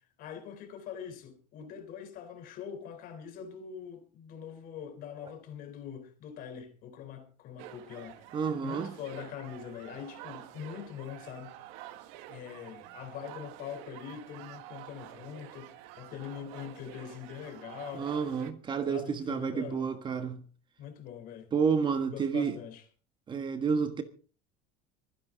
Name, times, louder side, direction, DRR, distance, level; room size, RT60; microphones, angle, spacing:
voice 1, 0.2-8.3 8.6-11.5 12.3-18.1 18.9-19.9 20.8-21.5 22.1-22.8, left 8 dB, 50° left, 3.9 m, -43 dB
sound 1, 7.6-18.5, right 13 dB, 75° right, 1.8 m, -48 dB
voice 2, 8.3-8.9 17.9-20.4 21.5-22.6 23.3-24.0, right 6 dB, 25° right, 1.4 m, -30 dB
24.0 x 10.5 x 3.9 m
cardioid pair, 155°, 19 cm